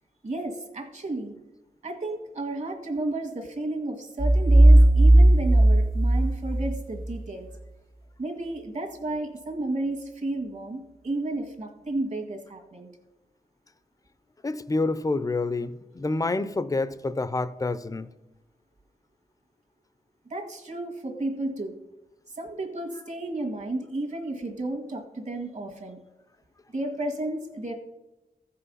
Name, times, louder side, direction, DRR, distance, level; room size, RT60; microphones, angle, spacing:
voice 1, 0.2-1.3 1.8-7.5 8.2-12.9 20.3-21.8 22.4-26.0 26.7-27.7, right 2 dB, 50° right, 4 dB, 1.8 m, -32 dB
sound 1, 4.2-7.1, right 1 dB, 75° right, 2.0 m, -16 dB
voice 2, 14.4-18.1, left 3 dB, 20° left, 14 dB, 0.6 m, -28 dB
15.0 x 5.7 x 5.5 m, 1.0 s
wide cardioid pair, 75°, 16 cm